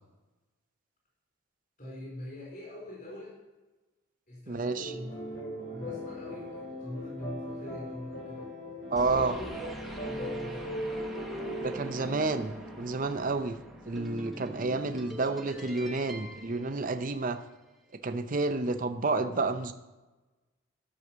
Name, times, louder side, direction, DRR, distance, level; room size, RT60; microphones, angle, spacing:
voice 1, 1.8-3.3 4.3-5.3 5.7-8.5 9.1-10.8, left 1 dB, 45° left, -5 dB, 4.2 m, -43 dB
voice 2, 4.5-4.9 8.9-9.3 11.6-13.6 13.9-17.4 18.0-19.7, right 3 dB, 40° right, 9 dB, 0.6 m, -30 dB
sound 1, 4.8-13.5, equal, 60° left, 2.9 m, -39 dB
sound 2, 9.0-17.5, equal, ahead, 1.0 m, -45 dB
12.5 x 6.5 x 6.2 m, 1.2 s
head